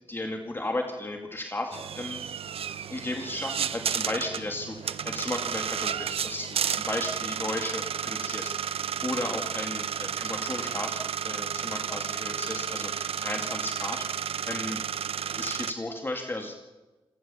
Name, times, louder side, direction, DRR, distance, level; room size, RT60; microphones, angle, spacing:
voice 1, 0.1-2.2 2.9-14.8 15.2-16.5, left 2 dB, 20° left, 3 dB, 2.3 m, -35 dB
sound 1, 1.7-15.7, right 8 dB, 75° right, 0.7 m, -32 dB
27.5 x 14.0 x 7.1 m, 1.2 s
cardioid pair, 90°, 10 cm